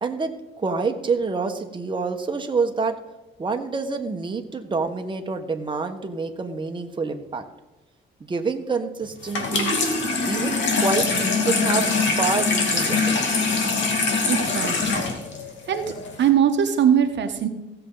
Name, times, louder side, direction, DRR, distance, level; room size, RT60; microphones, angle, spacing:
voice 1, 0.0-3.0 3.4-7.4 8.2-9.7 10.2-11.9 12.2-13.5, right 4 dB, 25° right, 4 dB, 1.2 m, -27 dB
Water tap faucet / Sink (filling or washing), 9.2-16.3, left 4 dB, 70° left, 2.4 m, -23 dB
voice 2, 14.3-15.0 15.7-17.5, right 9 dB, 65° right, 7 dB, 1.0 m, -21 dB
16.0 x 6.9 x 3.9 m, 1.0 s
cardioid pair, 90°, 20 cm